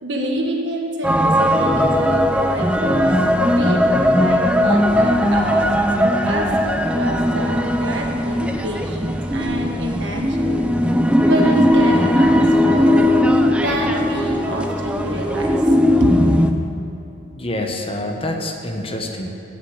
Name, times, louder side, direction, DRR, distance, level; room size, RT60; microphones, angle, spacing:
voice 1, 0.0-5.7 6.2-10.6 11.2-13.2 13.5-16.1, right 1 dB, 65° right, 1 dB, 1.7 m, -27 dB
sound 1, 1.0-16.5, equal, 5° right, 0.6 m, -18 dB
voice 2, 17.3-19.3, left 1 dB, 30° left, 3 dB, 1.1 m, -26 dB
16.0 x 6.3 x 8.1 m, 2.8 s
head